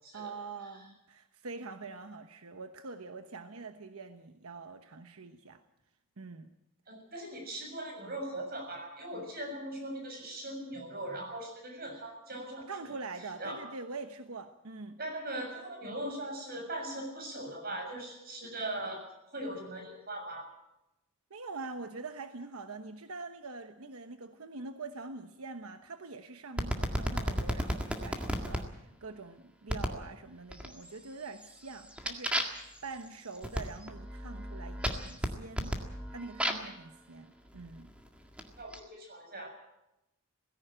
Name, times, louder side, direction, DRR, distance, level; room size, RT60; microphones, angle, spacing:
voice 1, 0.1-5.6 6.2-6.5 12.7-15.0 21.3-35.8 36.1-37.9, right 3 dB, 90° right, 7 dB, 1.1 m, -44 dB
voice 2, 6.9-12.7 13.4-13.6 15.0-19.1 19.3-20.5 38.6-39.5, right 1 dB, 45° right, 3 dB, 7.0 m, -40 dB
sound 1, 26.6-28.6 29.7-30.0 30.5-31.0 31.4-36.8 37.6-38.8, equal, 5° right, 1.8 m, -34 dB
18.0 x 16.0 x 8.9 m, 0.91 s
head